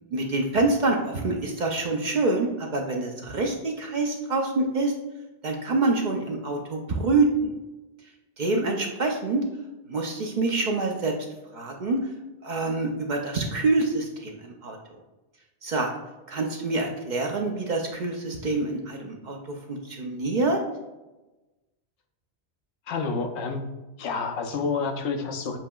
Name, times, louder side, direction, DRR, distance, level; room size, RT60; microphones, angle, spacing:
voice 1, 0.1-4.9 5.4-7.5 8.4-9.4 9.9-11.1 11.5-12.0 12.4-14.8 15.6-15.9 16.3-19.4 19.7-20.6, right 3 dB, 55° right, 2 dB, 0.6 m, -26 dB
voice 2, 22.9-23.6 24.0-25.6, left 4 dB, 85° left, 5 dB, 0.9 m, -29 dB
7.3 x 2.8 x 2.2 m, 1.1 s
omnidirectional pair, 1.1 m